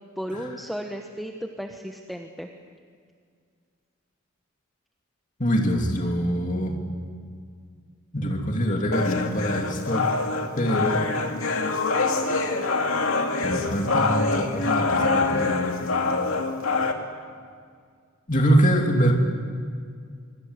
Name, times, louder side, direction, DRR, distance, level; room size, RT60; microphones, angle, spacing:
voice 1, 0.2-2.5, equal, ahead, 3 dB, 1.1 m, -34 dB
voice 2, 5.4-6.8 8.1-10.1 10.6-11.0 13.4-15.8 18.3-19.1, equal, 40° left, 1 dB, 2.7 m, -24 dB
sound 1, 8.9-16.9, left 3 dB, 80° left, 2.4 m, -25 dB
25.0 x 25.0 x 8.2 m, 2.1 s
head